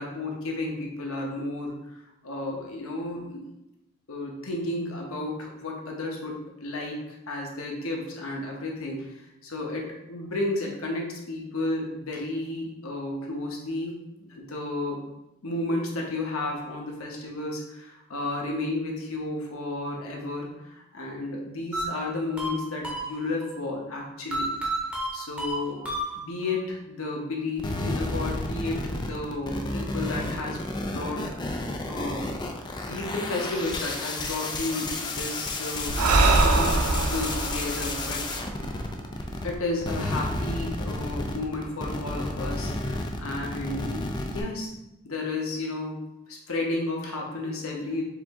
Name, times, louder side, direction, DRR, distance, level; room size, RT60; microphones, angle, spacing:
voice 1, 0.0-3.4 4.1-15.0 15.4-24.6 25.1-31.3 31.9-32.6 32.8-38.2 39.4-44.7 45.0-46.0 46.3-48.0, left 2 dB, 65° left, -1 dB, 1.0 m, -32 dB
sound 1, 21.7-23.5 24.3-26.6, right 1 dB, 5° right, 0.9 m, -32 dB
sound 2, 27.6-39.5 39.8-44.4, left 2 dB, 20° left, 0.3 m, -32 dB
Breathing, 35.9-39.4, right 3 dB, 85° right, 0.5 m, -24 dB
4.8 x 2.7 x 3.6 m, 0.89 s
head